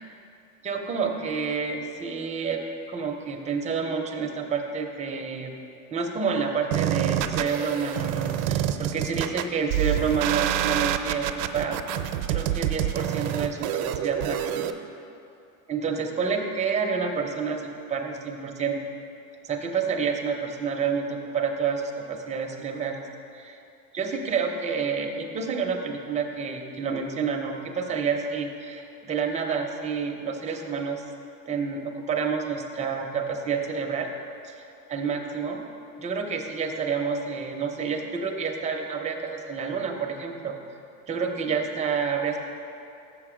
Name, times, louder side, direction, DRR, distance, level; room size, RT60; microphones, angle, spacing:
voice 1, 0.6-2.6 2.9-5.5 5.9-11.8 12.3-14.7 15.7-18.8 19.4-21.8 22.1-23.0 23.4-23.6 23.9-31.0 31.5-34.1 34.4-34.6 34.9-35.6 36.0-40.6 41.1-42.4, right 5 dB, 15° right, 2 dB, 0.5 m, -29 dB
sound 1, 6.7-14.7, right 11 dB, 75° right, 0.6 m, -27 dB
6.7 x 6.7 x 4.9 m, 2.7 s
supercardioid pair, 130°, 44 cm